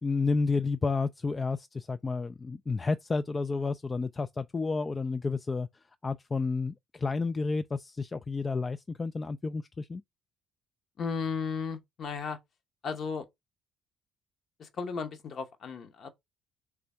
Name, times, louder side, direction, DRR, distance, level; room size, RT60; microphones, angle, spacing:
voice 1, 0.0-5.7 6.0-10.0, left 4 dB, 30° left, 0.3 m, -31 dB
voice 2, 11.0-12.4 12.8-13.3 14.6-16.1, left 5 dB, 50° left, 0.9 m, -35 dB
3.6 x 3.4 x 4.2 m
figure-of-eight pair, 50°, 0 cm